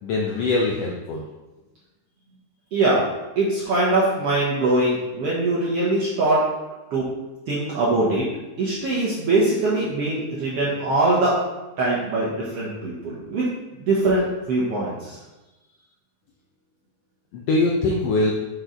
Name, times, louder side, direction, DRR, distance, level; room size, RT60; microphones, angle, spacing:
voice 1, 0.0-1.2 17.3-18.3, left 2 dB, 80° left, -1 dB, 1.4 m, -22 dB
voice 2, 2.7-3.1 3.4-6.5 6.9-7.1 7.5-8.3 8.6-11.4 11.8-13.5 13.7-15.2, right 2 dB, 65° right, -6 dB, 1.7 m, -22 dB
6.6 x 4.7 x 3.8 m, 1.1 s
omnidirectional pair, 3.6 m